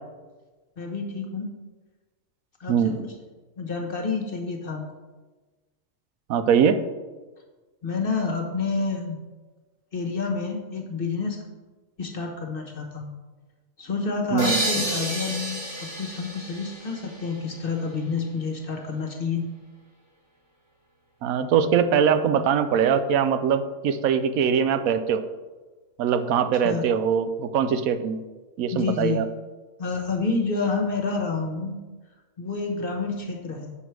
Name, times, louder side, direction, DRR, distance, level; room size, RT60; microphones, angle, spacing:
voice 1, 0.8-1.5 2.6-3.0 3.6-4.9 7.8-9.2 9.9-11.4 12.0-13.1 13.8-19.5 26.6-26.9 28.7-29.2 29.8-31.8 32.4-33.7, left 4 dB, 45° left, 2 dB, 1.2 m, -29 dB
voice 2, 2.7-3.0 6.3-6.8 14.3-14.6 21.2-25.2 26.0-28.2 28.6-29.3, right 7 dB, 80° right, 10 dB, 1.0 m, -22 dB
sound 1, 14.4-17.9, right 1 dB, 35° right, 1.5 m, -30 dB
8.1 x 5.8 x 4.6 m, 1.2 s
omnidirectional pair, 1.4 m